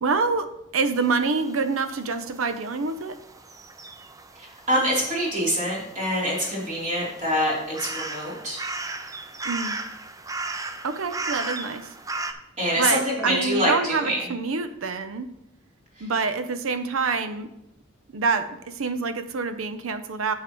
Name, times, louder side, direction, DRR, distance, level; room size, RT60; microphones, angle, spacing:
voice 1, 0.0-3.2 9.4-9.8 10.8-11.9 12.8-15.3 16.0-17.5 18.1-20.3, right 4 dB, 80° right, 11 dB, 0.6 m, -26 dB
sound 1, 1.0-12.3, right 3 dB, 15° right, 0.4 m, -37 dB
voice 2, 4.4-8.7 12.6-14.2 16.0-16.1, equal, 35° right, -6 dB, 3.4 m, -25 dB
9.1 x 7.4 x 3.1 m, 0.85 s
head